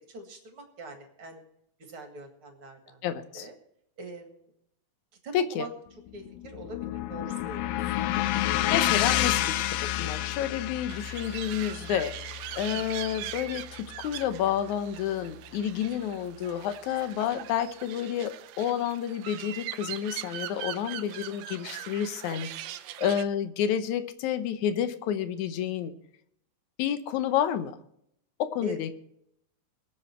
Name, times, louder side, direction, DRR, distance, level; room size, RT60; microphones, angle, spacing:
voice 1, 0.0-1.4 1.8-3.0 3.3-3.5 4.0-4.5 5.2-5.7 6.1-7.9 12.7-12.8 23.0-23.1 28.6-28.8, right 1 dB, 45° right, 5 dB, 2.4 m, -42 dB
voice 2, 3.0-3.5 5.3-5.7 8.7-9.6 9.8-12.1 12.6-22.5 23.0-25.9 26.8-27.8 28.4-28.9, left 9 dB, 70° left, 11 dB, 2.2 m, -30 dB
sound 1, 6.1-14.4, left 14 dB, 90° left, 2.4 m, -30 dB
sound 2, 10.9-23.2, right 13 dB, 90° right, 1.5 m, -41 dB
23.0 x 7.8 x 4.4 m, 0.74 s
omnidirectional pair, 3.9 m